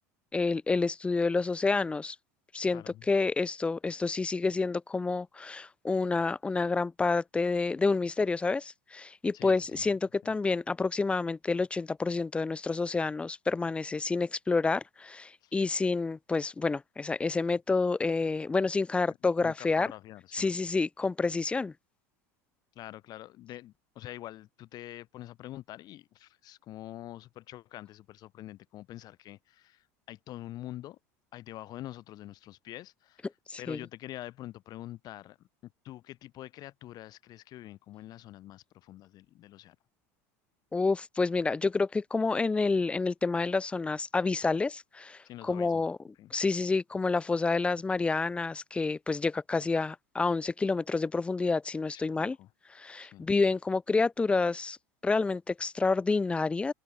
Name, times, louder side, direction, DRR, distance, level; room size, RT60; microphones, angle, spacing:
voice 1, 0.3-2.2 2.5-19.9 20.3-21.7 33.5-33.8 40.7-46.0 46.3-52.4 52.7-54.8 55.0-56.7, left 3 dB, 10° left, 0.4 m, -29 dB
voice 2, 2.7-3.0 9.3-9.9 10.2-10.4 15.4-15.5 19.1-20.5 22.8-31.0 31.3-33.3 33.6-39.8 45.2-45.9 46.2-46.3 51.9-52.5 53.0-53.3, left 14 dB, 50° left, 1.8 m, -46 dB
open air
supercardioid pair, 105°, 9 cm